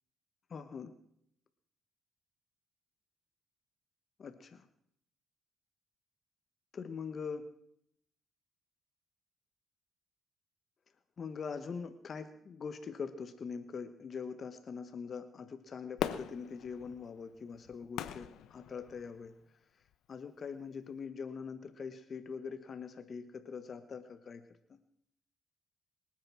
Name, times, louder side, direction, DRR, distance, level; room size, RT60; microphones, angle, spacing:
voice 1, 0.5-0.9 4.2-4.7 6.7-7.5 11.2-19.3 20.1-24.4 24.7-24.8, left 5 dB, 45° left, 9 dB, 1.2 m, -43 dB
Fireworks, 16.0-19.3 19.9-20.0, left 10 dB, 85° left, 1.0 m, -41 dB
23.5 x 9.0 x 6.2 m, 0.71 s
cardioid pair, 90°, 0 cm